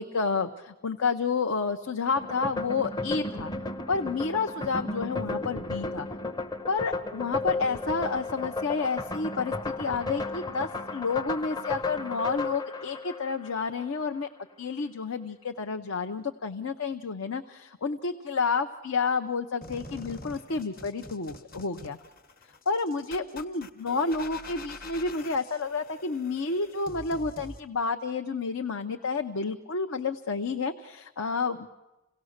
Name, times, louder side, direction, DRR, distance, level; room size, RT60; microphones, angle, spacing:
voice 1, 0.0-3.5 3.9-6.1 6.7-14.3 14.6-22.0 22.7-31.7, left 4 dB, 70° left, 5 dB, 0.7 m, -30 dB
sound 1, 2.1-13.9, left 2 dB, 20° left, 0.7 m, -34 dB
sound 2, 19.6-27.6, left 2 dB, 40° left, 1.1 m, -45 dB
28.0 x 17.5 x 6.5 m, 1.0 s
head